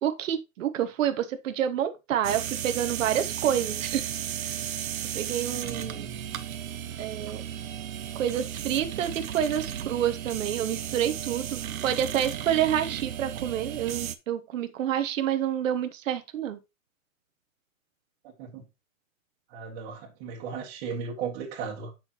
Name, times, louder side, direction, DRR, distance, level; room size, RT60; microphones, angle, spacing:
voice 1, 0.0-4.1 4.4-4.6 5.1-6.1 7.0-7.4 8.1-16.6, right 10 dB, 65° right, 1.2 m, -28 dB
sound 1, 2.2-14.2, right 10 dB, 85° right, 1.0 m, -34 dB
voice 2, 5.5-6.4 18.2-18.6 19.5-21.9, right 6 dB, 30° right, 2.0 m, -37 dB
8.3 x 6.1 x 3.0 m
hypercardioid pair, 165°, 41 cm